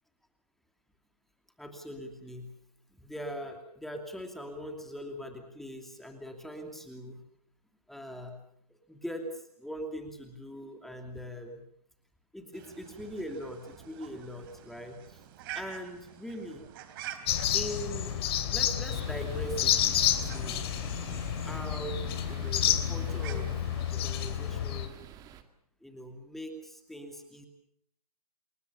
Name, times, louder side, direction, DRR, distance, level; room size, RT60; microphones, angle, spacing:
voice 1, 1.6-2.5 3.0-7.2 7.9-8.4 8.7-11.6 12.3-15.2 15.5-16.6 17.5-18.2 18.5-20.7 21.4-23.6 23.9-25.0 25.8-27.5, equal, ahead, 4 dB, 2.7 m, -41 dB
sound 1, 12.5-24.3, right 10 dB, 35° right, 3.4 m, -48 dB
sound 2, 17.3-24.9, left 10 dB, 40° left, 3.3 m, -30 dB
sound 3, 18.9-25.4, right 9 dB, 20° right, 2.1 m, -48 dB
29.0 x 21.0 x 7.0 m, 0.68 s
figure-of-eight pair, 135°, 20 cm